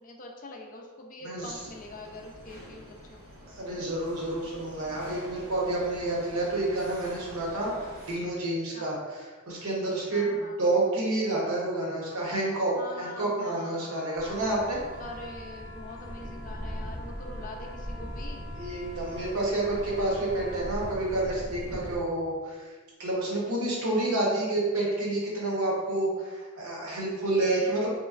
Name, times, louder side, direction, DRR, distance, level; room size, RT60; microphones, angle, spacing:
voice 1, 0.0-3.3 8.7-8.9 10.1-10.6 12.8-14.0 15.0-18.5, left 2 dB, 35° left, 1 dB, 0.4 m, -44 dB
voice 2, 1.2-1.5 3.5-14.8 18.6-22.7 23.0-27.9, right 2 dB, 70° right, -4 dB, 0.9 m, -29 dB
sound 1, 1.3-8.1, equal, 90° right, 1.5 m, -48 dB
sound 2, 13.8-21.0, equal, 45° right, 0.6 m, -47 dB
sound 3, 14.2-22.0, equal, 5° right, 0.7 m, -40 dB
3.2 x 2.9 x 2.4 m, 1.4 s
head